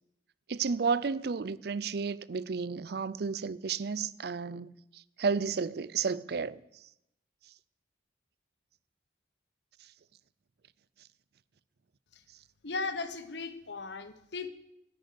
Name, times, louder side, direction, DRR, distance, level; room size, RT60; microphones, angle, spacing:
voice 1, 0.5-6.6, right 5 dB, 55° right, 0.5 m, -32 dB
voice 2, 12.6-14.5, left 3 dB, 65° left, 1.1 m, -37 dB
13.5 x 10.5 x 6.8 m
head